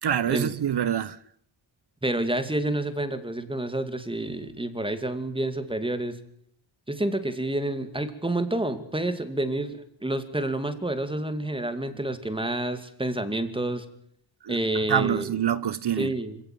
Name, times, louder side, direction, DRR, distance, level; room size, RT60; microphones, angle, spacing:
voice 1, 0.0-1.2 14.4-14.6 14.9-16.1, right 9 dB, 55° right, 0.9 m, -26 dB
voice 2, 2.0-6.2 6.9-13.9 14.5-15.3 16.0-16.4, right 1 dB, 10° right, 2.4 m, -29 dB
26.5 x 16.5 x 9.1 m
wide cardioid pair, 120°, 49 cm